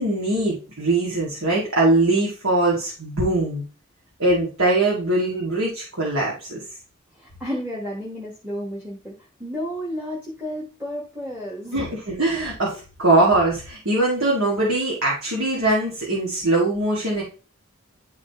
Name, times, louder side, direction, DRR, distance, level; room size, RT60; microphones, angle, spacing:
voice 1, 0.0-3.6 4.2-6.6 11.7-17.2, right 2 dB, 75° right, -4 dB, 2.1 m, -21 dB
voice 2, 7.1-9.1 9.4-11.9, equal, 5° right, -4 dB, 1.3 m, -32 dB
10.5 x 3.9 x 3.5 m, 0.36 s
head